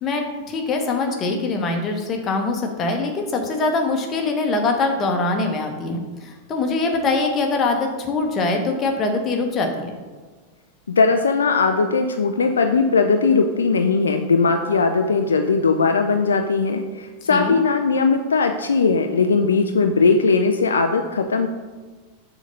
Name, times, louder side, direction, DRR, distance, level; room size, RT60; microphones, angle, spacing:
voice 1, 0.0-10.0 17.2-17.6, left 3 dB, 30° left, 3 dB, 1.1 m, -23 dB
voice 2, 10.9-21.5, left 4 dB, 70° left, 5 dB, 0.4 m, -19 dB
6.3 x 3.9 x 5.4 m, 1.4 s
figure-of-eight pair, 90°, 0 cm